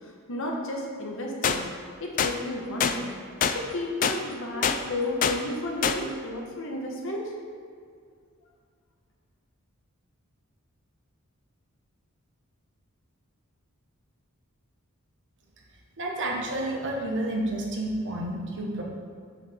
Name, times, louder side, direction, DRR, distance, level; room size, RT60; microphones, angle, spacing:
voice 1, 0.0-1.7 2.0-3.1 3.4-7.3, left 1 dB, 65° left, -1 dB, 1.1 m, -32 dB
sound 1, 1.4-1.6 2.2-2.3 2.8-3.0 3.4-3.6 4.0-4.2 4.6-4.8 5.2-5.4 5.8-6.0, left 7 dB, 40° left, 0.3 m, -24 dB
voice 2, 16.0-18.8, right 1 dB, 60° right, -1 dB, 1.1 m, -30 dB
6.4 x 6.3 x 3.6 m, 2.1 s
head